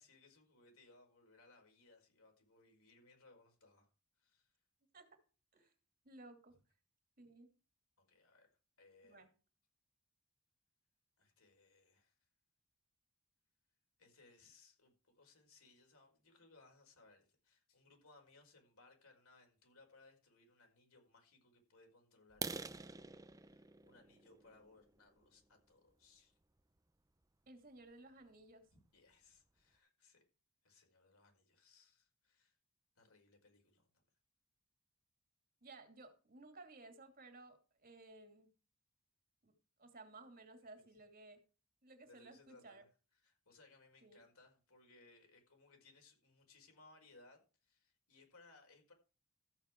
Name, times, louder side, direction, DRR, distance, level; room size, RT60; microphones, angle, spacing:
voice 1, 0.0-3.9 4.2-4.5 5.5-5.7 8.0-8.5 8.8-9.3 11.2-12.2 14.0-26.4 28.7-30.2 30.6-32.5 32.9-33.9 42.1-42.9 43.2-48.9, left 3 dB, 75° left, 5.1 m, -66 dB
voice 2, 6.0-6.6 7.2-7.5 9.0-9.3 27.5-28.7 35.6-38.5 39.4-39.5 39.8-41.4 41.8-42.8 44.0-44.2, right 2 dB, 45° right, 2.6 m, -57 dB
sound 1, 22.3-26.1 26.6-26.8 27.2-27.3 27.8-27.9 28.2-28.3 28.8-28.9 29.1-29.6, right 4 dB, 15° right, 0.6 m, -48 dB
14.0 x 8.2 x 4.6 m
head